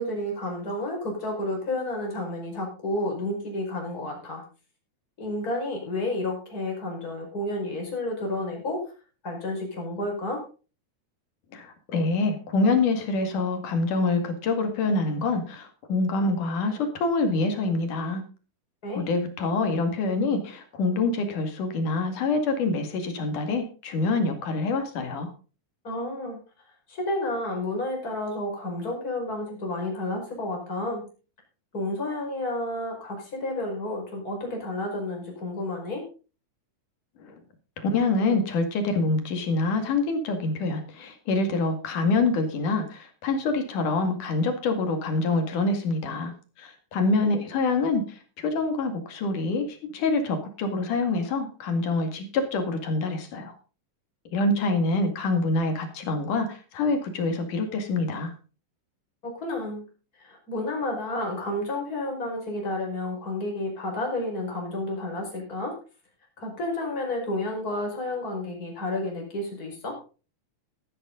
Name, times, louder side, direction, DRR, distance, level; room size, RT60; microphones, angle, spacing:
voice 1, 0.0-4.4 5.2-8.8 9.2-10.4 18.8-19.1 25.8-26.4 26.9-31.0 31.7-36.0 47.2-47.4 59.2-59.8 60.2-65.7 66.4-70.0, left 1 dB, 25° left, 0 dB, 5.4 m, -31 dB
voice 2, 11.5-18.2 18.9-25.3 37.8-46.3 46.6-53.5 54.3-58.3, left 3 dB, 75° left, 6 dB, 3.6 m, -26 dB
13.5 x 12.5 x 3.8 m, 0.35 s
omnidirectional pair, 3.7 m